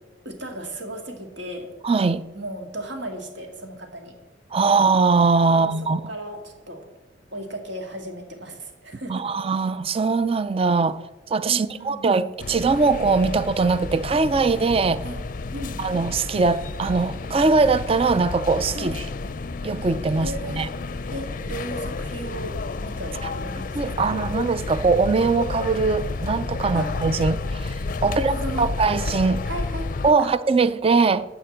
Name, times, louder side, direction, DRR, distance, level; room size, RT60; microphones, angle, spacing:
voice 1, 0.2-1.7 2.3-4.1 5.5-6.9 7.3-9.3 11.5-12.3 14.9-15.2 15.5-15.8 18.7-19.0 20.2-20.6 21.1-24.1 26.7-26.9 28.0-28.7 29.5-29.9 30.2-30.3, right 1 dB, 70° right, 2.0 m, -35 dB
voice 2, 1.8-2.2 4.5-6.0 9.1-11.0 11.3-15.0 15.8-19.0 19.6-20.7 23.7-27.7 28.0-28.3 28.6-29.4 30.0-31.2, right 4 dB, 30° right, 0.4 m, -21 dB
sound 1, 12.4-30.1, left 3 dB, 45° left, 0.5 m, -31 dB
11.5 x 5.1 x 7.8 m
head